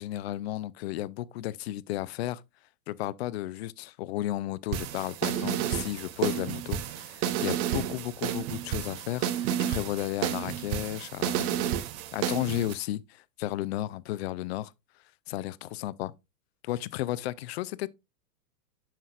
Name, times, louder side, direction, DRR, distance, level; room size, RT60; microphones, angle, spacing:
voice 1, 0.0-2.4 2.9-11.7 12.1-14.7 15.3-16.1 16.6-17.9, left 15 dB, 45° left, 0.4 m, -33 dB
sound 1, 4.7-12.7, right 10 dB, 30° right, 0.6 m, -31 dB
9.0 x 5.8 x 2.4 m
hypercardioid pair, 110°, 48 cm